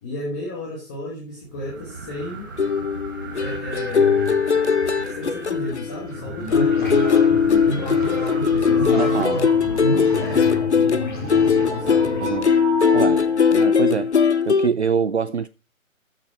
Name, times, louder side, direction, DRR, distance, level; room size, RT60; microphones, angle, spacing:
voice 1, 0.0-2.5 3.3-4.4 5.1-7.0 7.6-9.5 9.8-12.3, left 2 dB, 15° left, 1.6 m, -33 dB
sound 1, 1.4-13.6, right 4 dB, 15° right, 1.0 m, -36 dB
sound 2, 2.6-6.2 6.5-14.7, left 6 dB, 55° left, 0.8 m, -20 dB
sound 3, 6.1-12.4, equal, 35° left, 3.0 m, -30 dB
voice 2, 9.0-9.4 9.9-10.1 12.2-12.5 12.9-13.3 13.5-14.1 14.4-15.5, right 6 dB, 55° right, 0.5 m, -24 dB
13.5 x 6.4 x 4.6 m
figure-of-eight pair, 150°, 42 cm